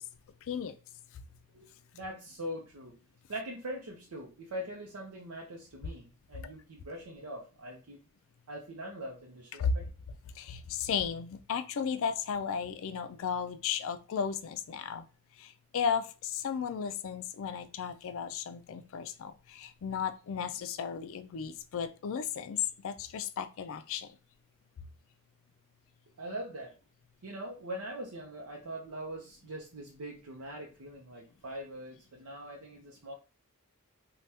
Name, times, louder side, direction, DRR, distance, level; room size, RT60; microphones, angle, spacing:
voice 1, 1.9-3.0 3.3-8.0 8.5-9.9 26.2-26.7 27.2-33.1, right 1 dB, 90° right, -1 dB, 0.6 m, -42 dB
voice 2, 10.4-15.0 15.7-22.6 22.8-24.1, left 7 dB, 60° left, 11 dB, 0.4 m, -34 dB
3.3 x 2.2 x 2.7 m, 0.33 s
head